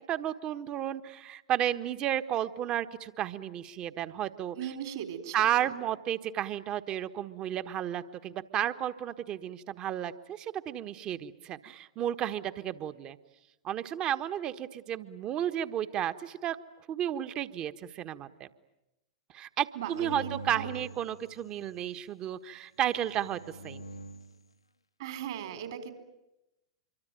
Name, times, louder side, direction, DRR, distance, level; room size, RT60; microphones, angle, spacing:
voice 1, 0.1-4.6 5.3-13.2 13.6-16.6 16.9-18.5 19.3-23.8, right 11 dB, 35° right, 11 dB, 1.4 m, -32 dB
voice 2, 4.5-5.7 19.7-20.7 25.0-25.9, right 9 dB, 60° right, 8 dB, 4.2 m, -38 dB
sound 1, 19.9-21.9 22.9-24.4, right 2 dB, 90° left, 1.4 m, -44 dB
26.5 x 24.0 x 9.2 m, 0.95 s
figure-of-eight pair, 100°, 3 cm